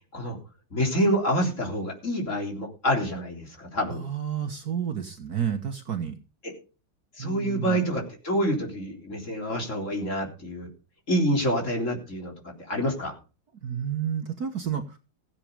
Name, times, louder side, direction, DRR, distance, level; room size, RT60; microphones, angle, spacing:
voice 1, 0.7-4.0 6.4-6.5 7.2-10.7 11.1-13.2, equal, 35° left, 1 dB, 4.0 m, -27 dB
voice 2, 3.9-6.2 7.2-7.8 13.6-15.0, right 8 dB, 50° right, 8 dB, 1.6 m, -30 dB
16.0 x 8.6 x 5.1 m, 0.33 s
omnidirectional pair, 2.2 m